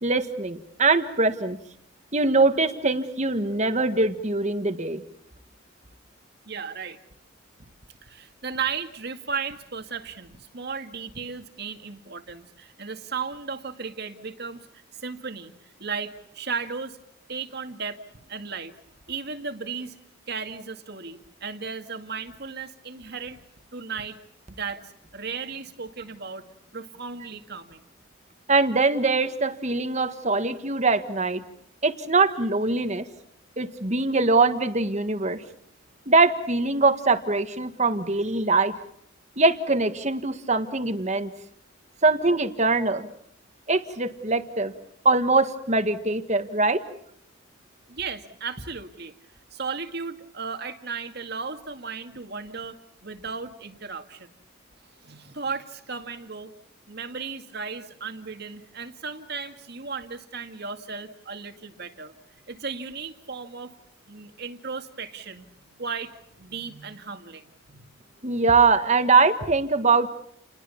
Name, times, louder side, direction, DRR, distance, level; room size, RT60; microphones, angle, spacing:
voice 1, 0.0-1.6 2.1-5.0 28.5-31.4 31.8-33.1 33.6-35.4 36.1-38.7 39.4-41.3 42.0-43.1 43.7-44.7 45.0-46.8 68.2-70.1, right 3 dB, 35° right, 9 dB, 1.6 m, -22 dB
voice 2, 6.5-7.0 8.0-15.5 15.8-17.0 17.3-18.0 18.3-18.8 19.1-20.0 20.3-23.4 23.7-24.2 24.5-24.8 25.1-26.4 26.7-27.8 47.9-49.1 49.5-52.8 53.0-54.3 55.0-56.5 56.9-62.1 62.5-63.7 64.1-65.5 65.8-67.9, right 5 dB, 55° right, 7 dB, 2.1 m, -35 dB
29.5 x 21.0 x 7.2 m, 0.72 s
head